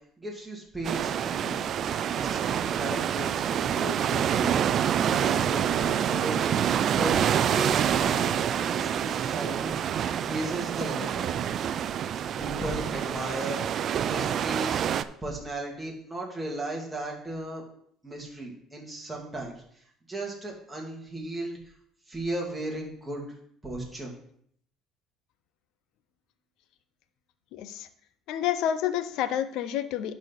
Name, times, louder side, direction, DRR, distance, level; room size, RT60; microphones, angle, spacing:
voice 1, 0.2-1.6 2.1-4.6 5.0-6.5 6.9-8.3 8.6-9.8 10.2-11.2 12.4-13.6 14.0-17.6 18.0-19.5 20.1-21.6 22.1-23.3 23.6-24.1, right 1 dB, 5° right, -2 dB, 2.3 m, -35 dB
sound 1, 0.8-15.0, right 9 dB, 45° right, 0.4 m, -27 dB
voice 2, 27.5-27.9 28.3-30.1, left 10 dB, 70° left, 11 dB, 0.6 m, -29 dB
11.0 x 4.1 x 4.6 m, 0.67 s
cardioid pair, 120°, 0 cm